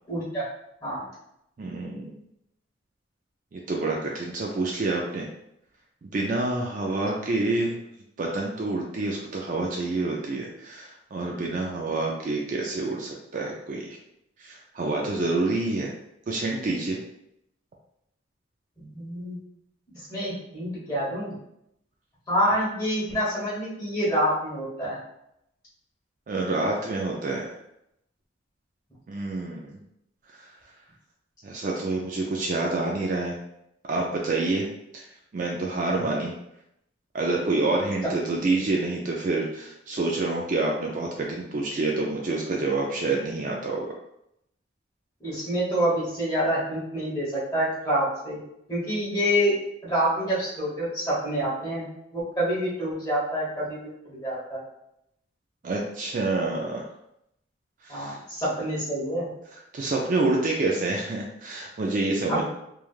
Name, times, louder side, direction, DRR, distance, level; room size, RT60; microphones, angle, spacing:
voice 1, 0.1-0.4 0.8-1.1 18.8-19.4 19.9-21.3 22.3-25.0 45.2-48.4 48.7-49.5 49.8-51.9 52.1-54.6 57.9-59.3 62.3-62.4, equal, 20° left, -8 dB, 1.2 m, -27 dB
voice 2, 1.6-2.2 3.5-5.3 6.0-7.8 8.2-14.0 14.4-15.9 16.3-17.0 26.3-27.5 29.1-29.8 31.4-33.4 33.9-34.7 34.9-35.0 35.3-36.3 37.1-43.9 55.6-56.8 57.8-58.2 59.7-62.4, right 2 dB, 40° right, -1 dB, 0.3 m, -27 dB
3.1 x 2.3 x 2.4 m, 0.78 s
head